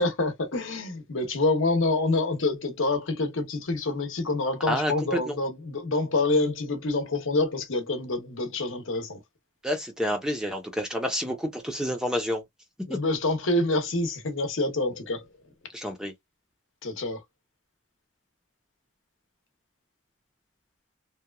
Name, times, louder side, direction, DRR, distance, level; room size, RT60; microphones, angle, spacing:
voice 1, 0.0-9.2 12.9-15.2 16.8-17.2, left 2 dB, 70° left, 0.8 m, -27 dB
voice 2, 4.7-5.3 9.6-12.4 12.9-13.0 15.7-16.1, equal, 5° right, 0.6 m, -29 dB
2.9 x 2.2 x 2.3 m
head